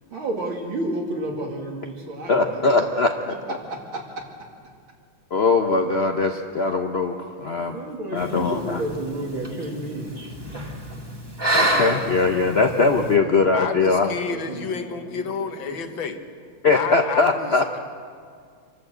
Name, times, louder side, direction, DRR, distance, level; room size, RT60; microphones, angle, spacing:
voice 1, 0.1-2.8 3.5-4.5 7.7-10.2 12.8-13.4 14.3-15.3 15.7-16.0, right 1 dB, 65° right, 0 dB, 3.2 m, -32 dB
voice 2, 2.3-3.3 5.3-7.8 8.1-8.8 10.2-10.3 11.5-14.1 16.6-17.6, left 4 dB, 80° left, 4 dB, 0.5 m, -21 dB
sound 1, 8.2-13.1, right 1 dB, 10° right, 1.6 m, -28 dB
voice 3, 13.5-16.2 16.7-17.8, left 6 dB, 65° left, 7 dB, 1.8 m, -30 dB
26.5 x 12.5 x 7.9 m, 2.1 s
omnidirectional pair, 2.4 m